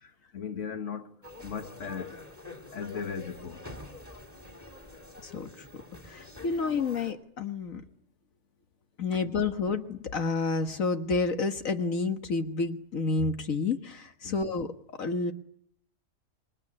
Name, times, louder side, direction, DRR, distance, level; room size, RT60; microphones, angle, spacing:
voice 1, 0.0-1.1 1.4-2.2 2.7-3.6 9.1-9.3 14.2-14.4, left 6 dB, 65° left, 2.0 m, -37 dB
sound 1, 1.2-7.1, left 2 dB, 10° left, 3.3 m, -46 dB
voice 2, 5.2-5.7 6.0-7.8 9.0-15.3, left 4 dB, 80° left, 1.9 m, -30 dB
27.5 x 22.0 x 9.9 m
omnidirectional pair, 1.4 m